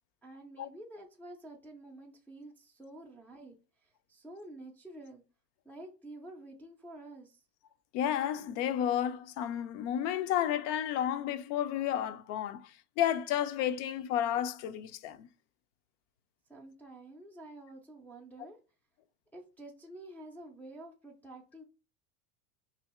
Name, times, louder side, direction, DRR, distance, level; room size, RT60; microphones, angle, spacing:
voice 1, 0.2-3.6 3.8-5.2 5.6-7.4 16.5-18.6 19.3-21.6, right 1 dB, 5° left, 0.3 m, -49 dB
voice 2, 7.9-12.7 13.0-15.3, left 10 dB, 60° left, 0.6 m, -31 dB
2.9 x 2.7 x 4.2 m
supercardioid pair, 120°, 49 cm